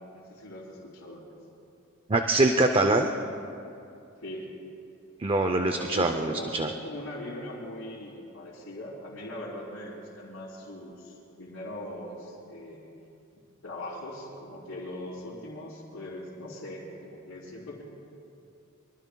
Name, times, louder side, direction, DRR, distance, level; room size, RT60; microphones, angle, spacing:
voice 1, 0.1-1.3 4.2-4.5 5.5-12.9 13.3-17.8, left 1 dB, 70° left, -8 dB, 3.4 m, -40 dB
voice 2, 2.1-3.1 5.2-6.7, right 2 dB, 25° right, 6 dB, 0.6 m, -24 dB
26.0 x 23.5 x 2.3 m, 2.7 s
head